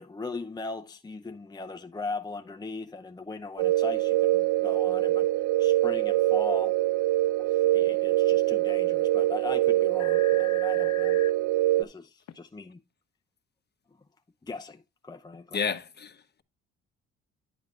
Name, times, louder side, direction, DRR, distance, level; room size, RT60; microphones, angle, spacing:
voice 1, 0.0-5.3 5.6-6.8 7.4-11.2 11.8-12.8 14.4-15.6, left 3 dB, 15° left, 0.7 m, -39 dB
sound 1, 3.6-11.8, right 16 dB, 80° right, 0.5 m, -24 dB
sound 2, 9.7-9.8 10.0-11.3 12.3-12.4, left 9 dB, 65° left, 0.8 m, -41 dB
voice 2, 15.5-16.4, left 6 dB, 35° left, 1.1 m, -31 dB
10.5 x 7.8 x 2.5 m
cardioid pair, 90°, 30 cm